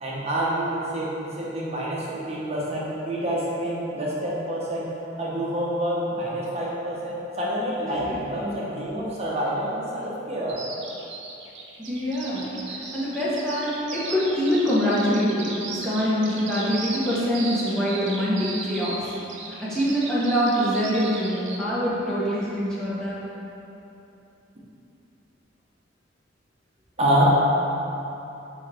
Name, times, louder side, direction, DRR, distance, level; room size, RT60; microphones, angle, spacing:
voice 1, 0.0-4.9 5.2-10.6 27.0-27.3, right 1 dB, 35° right, -6 dB, 1.0 m, -27 dB
Bird vocalization bird call bird song, 10.5-21.6, right 4 dB, 65° right, 0.8 m, -36 dB
voice 2, 11.8-12.5 12.9-19.0 19.6-23.2, equal, 5° left, -10 dB, 1.3 m, -24 dB
6.3 x 5.3 x 3.5 m, 2.9 s
head